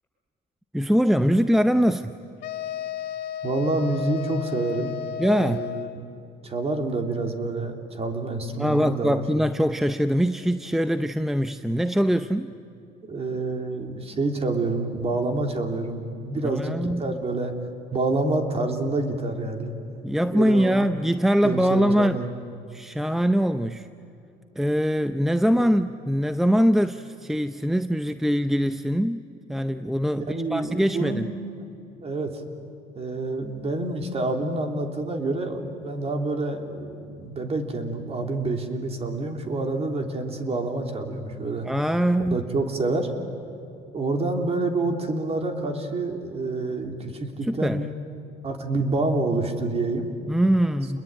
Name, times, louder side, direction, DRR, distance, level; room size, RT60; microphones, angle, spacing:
voice 1, 0.7-2.2 5.2-5.6 8.6-12.5 16.3-17.2 20.0-22.2 22.7-23.9 24.6-31.3 41.6-42.4 47.4-47.9 50.3-51.0, equal, ahead, 10 dB, 0.7 m, -23 dB
sound 1, 2.4-6.1, left 10 dB, 80° left, 1.3 m, -33 dB
voice 2, 3.4-4.9 5.3-6.0 6.4-9.2 13.1-17.5 17.9-19.7 20.3-20.8 21.4-22.3 25.5-25.7 30.1-31.6 32.0-32.3 32.9-41.7 42.3-43.1 43.9-47.9 48.4-50.2, right 2 dB, 35° right, 4 dB, 3.4 m, -27 dB
29.0 x 21.5 x 9.1 m, 2.7 s
cardioid pair, 110°, 17 cm